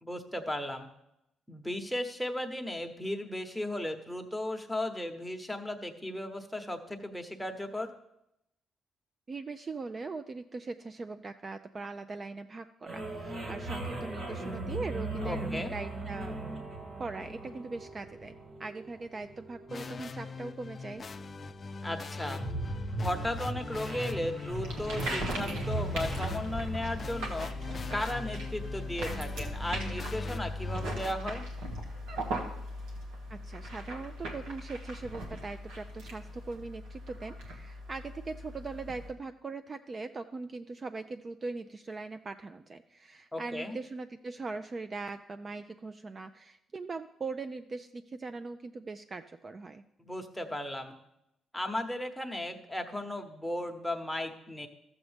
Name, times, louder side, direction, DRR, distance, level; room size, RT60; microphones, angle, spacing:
voice 1, 0.0-0.9 1.5-7.9 15.2-15.7 21.8-22.4 23.0-27.5 27.9-31.5 43.3-43.8 50.0-51.0 51.5-54.7, left 1 dB, ahead, 4 dB, 1.0 m, -35 dB
voice 2, 9.3-16.4 17.0-21.0 33.3-49.8, right 3 dB, 35° right, 8 dB, 0.4 m, -40 dB
sound 1, 12.9-28.3, right 1 dB, 55° right, 2.0 m, -39 dB
sound 2, 19.7-31.1, left 4 dB, 40° left, 0.4 m, -41 dB
sound 3, 24.5-39.1, equal, 90° right, 1.4 m, -39 dB
13.0 x 7.1 x 3.4 m, 0.83 s
cardioid pair, 90°, 0 cm